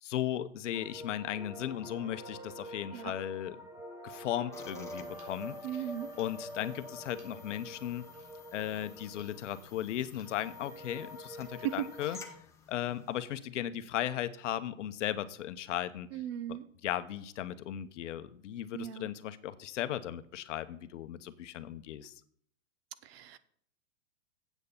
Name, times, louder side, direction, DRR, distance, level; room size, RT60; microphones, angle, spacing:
voice 1, 0.0-3.6 4.0-5.8 6.2-8.1 8.5-12.2 12.7-16.1 16.5-16.6 16.8-22.1, left 11 dB, 65° left, 12 dB, 0.9 m, -36 dB
sound 1, 0.7-12.3, equal, 10° right, 1.3 m, -46 dB
sound 2, 4.1-4.3 5.1-5.4 6.1-6.4 6.9-7.4 8.1-8.4 9.1-9.5 10.1-10.4, right 3 dB, 90° right, 3.8 m, -63 dB
sound 3, 4.5-13.2, left 5 dB, 5° left, 0.7 m, -55 dB
voice 2, 5.6-6.1 11.6-11.9 16.1-16.6 18.7-19.1 23.0-23.4, right 11 dB, 50° right, 15 dB, 0.7 m, -37 dB
8.1 x 6.4 x 7.1 m, 0.62 s
hypercardioid pair, 145°, 40 cm